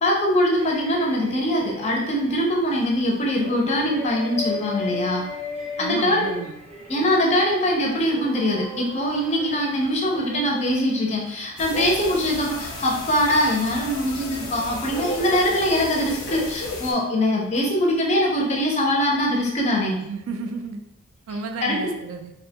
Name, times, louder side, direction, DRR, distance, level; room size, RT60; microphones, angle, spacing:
voice 1, 0.0-5.2 5.8-6.4 6.9-20.0 21.6-21.8, equal, 30° left, -1 dB, 0.4 m, -22 dB
sound 1, 0.5-17.7, left 2 dB, 30° right, 0.6 m, -38 dB
voice 2, 5.8-6.5 20.0-20.8 21.3-22.3, right 4 dB, 80° right, 6 dB, 0.3 m, -32 dB
sound 2, 11.6-16.9, left 2 dB, 85° left, 0.5 m, -33 dB
2.5 x 2.1 x 2.7 m, 0.85 s
head